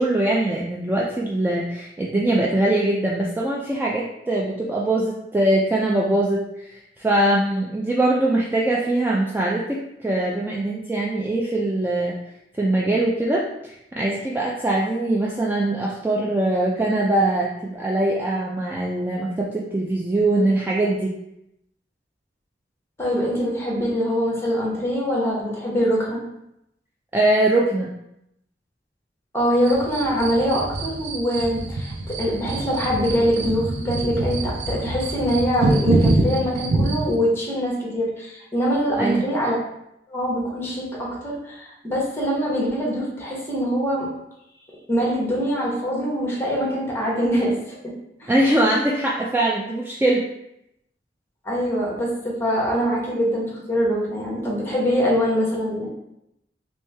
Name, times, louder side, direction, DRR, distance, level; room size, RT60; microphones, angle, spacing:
voice 1, 0.0-12.1 12.5-21.1 27.1-27.9 39.0-39.2 48.3-50.2, right 1 dB, 10° right, -3 dB, 0.3 m, -22 dB
voice 2, 23.0-26.2 29.3-39.6 40.1-44.1 44.9-47.9 48.2-48.3 51.4-55.9, equal, 15° left, -3 dB, 1.0 m, -23 dB
sound 1, 29.6-37.1, right 2 dB, 80° right, 0.6 m, -25 dB
3.2 x 3.1 x 3.3 m, 0.81 s
head